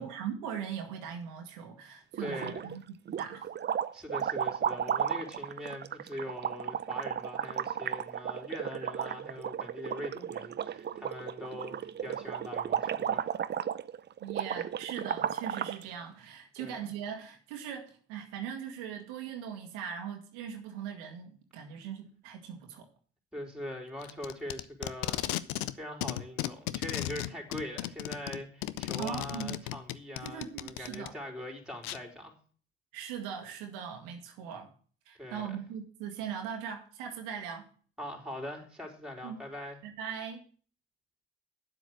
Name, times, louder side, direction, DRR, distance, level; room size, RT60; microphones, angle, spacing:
voice 1, 0.0-2.9 3.2-3.5 14.2-22.9 29.0-29.6 30.2-31.1 32.9-34.7 35.1-37.7 39.2-39.4 39.8-40.4, right 8 dB, 80° right, 1.6 m, -40 dB
sound 1, 2.1-2.8 3.1-15.8, right 8 dB, 35° right, 0.6 m, -34 dB
voice 2, 2.2-2.7 3.9-13.3 16.6-16.9 23.3-25.2 25.7-32.3 35.2-35.6 38.0-39.8, left 1 dB, ahead, 4.1 m, -42 dB
Packing tape duct tape, 24.0-25.7 26.0-31.1 31.8-32.0, left 15 dB, 85° left, 0.6 m, -35 dB
9.6 x 7.7 x 6.3 m
hypercardioid pair, 60°, 30 cm